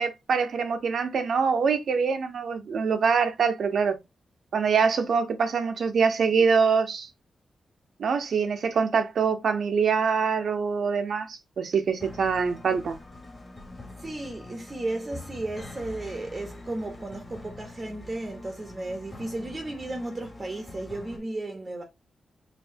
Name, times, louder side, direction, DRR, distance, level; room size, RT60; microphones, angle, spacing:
voice 1, 0.0-4.0 4.5-7.1 8.0-13.0, right 5 dB, 65° right, 0.7 m, -24 dB
sound 1, 12.0-21.2, left 2 dB, 25° left, 1.5 m, -44 dB
voice 2, 14.0-21.8, right 2 dB, 25° right, 0.8 m, -34 dB
5.6 x 2.7 x 2.6 m
wide cardioid pair, 155°, 0 cm